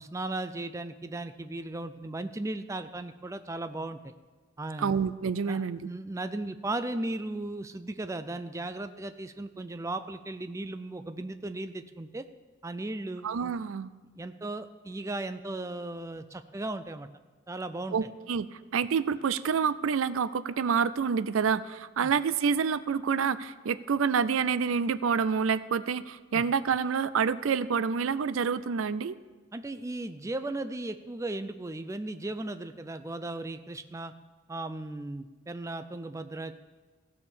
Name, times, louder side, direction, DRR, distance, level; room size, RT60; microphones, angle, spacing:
voice 1, 0.0-4.1 4.6-4.9 5.5-12.2 12.6-13.3 14.1-17.1 17.5-18.0 22.0-22.1 26.3-26.4 29.5-34.1 34.5-36.5, right 2 dB, 15° right, 10 dB, 0.4 m, -36 dB
voice 2, 4.8-5.8 13.2-13.9 17.9-29.2, right 6 dB, 75° right, 17 dB, 0.4 m, -28 dB
16.0 x 6.5 x 7.2 m, 1.3 s
head